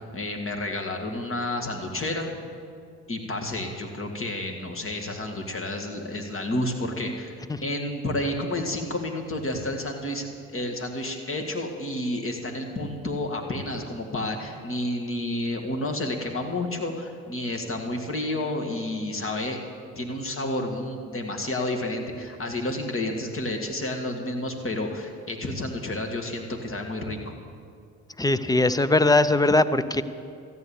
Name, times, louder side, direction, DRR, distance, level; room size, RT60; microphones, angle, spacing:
voice 1, 0.1-2.3 3.1-19.6 20.0-27.2, left 1 dB, 35° left, 2 dB, 2.1 m, -30 dB
voice 2, 28.2-30.0, left 2 dB, 10° left, 12 dB, 0.6 m, -20 dB
13.5 x 9.2 x 7.1 m, 2.3 s
hypercardioid pair, 50°, 36 cm